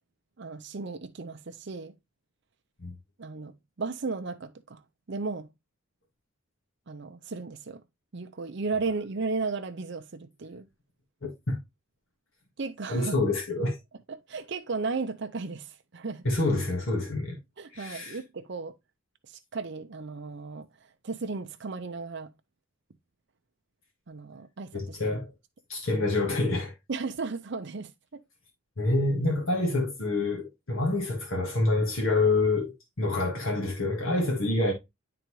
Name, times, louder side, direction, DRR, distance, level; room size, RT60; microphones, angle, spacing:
voice 1, 0.4-1.9 3.2-4.8 5.1-5.5 6.9-7.8 8.1-10.7 12.6-13.2 14.1-16.3 17.6-18.7 19.3-20.7 21.0-22.3 24.1-25.0 26.9-28.2, right 4 dB, 55° right, 0.6 m, -35 dB
voice 2, 11.2-11.6 12.9-13.8 16.2-17.4 17.7-18.2 24.7-25.3 25.7-26.7 28.8-34.7, left 2 dB, 65° left, 1.7 m, -27 dB
10.5 x 3.9 x 3.1 m
head